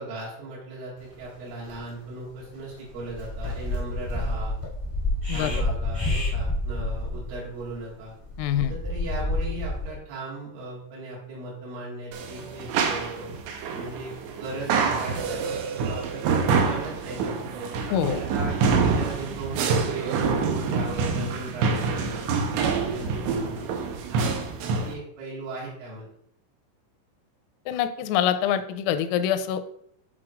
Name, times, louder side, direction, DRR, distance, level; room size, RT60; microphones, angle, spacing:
voice 1, 0.0-4.6 5.3-8.1 8.6-13.4 13.7-17.4 17.9-23.8 24.1-26.1, right 2 dB, 75° right, -6 dB, 4.2 m, -37 dB
sound 1, 1.2-1.3 1.6-1.8 2.3-2.5 2.9-10.0, left 2 dB, 25° right, 0.4 m, -29 dB
voice 2, 8.4-8.7 17.9-18.2 27.7-29.6, left 10 dB, 85° left, 11 dB, 3.2 m, -25 dB
sound 2, 12.1-24.9, right 5 dB, 90° right, 2.6 m, -26 dB
10.5 x 4.4 x 2.4 m, 0.70 s
omnidirectional pair, 5.9 m